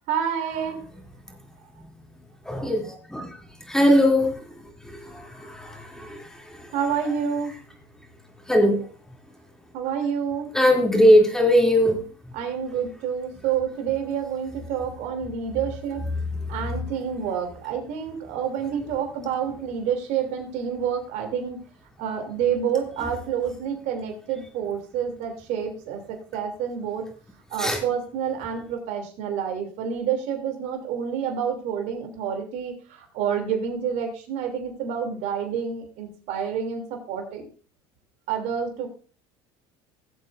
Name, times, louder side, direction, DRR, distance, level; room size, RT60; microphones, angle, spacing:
voice 1, 0.1-0.8 6.7-7.5 9.7-10.5 12.3-16.0 16.5-21.6 22.0-27.1 27.5-37.5 38.3-38.9, right 7 dB, 65° right, 3 dB, 3.1 m, -28 dB
voice 2, 2.5-3.3 3.7-4.3 5.1-6.2 8.5-8.8 10.5-12.0 27.6-27.8, equal, 5° left, 1 dB, 3.0 m, -19 dB
17.5 x 7.7 x 2.6 m, 0.39 s
supercardioid pair, 95°, 13 cm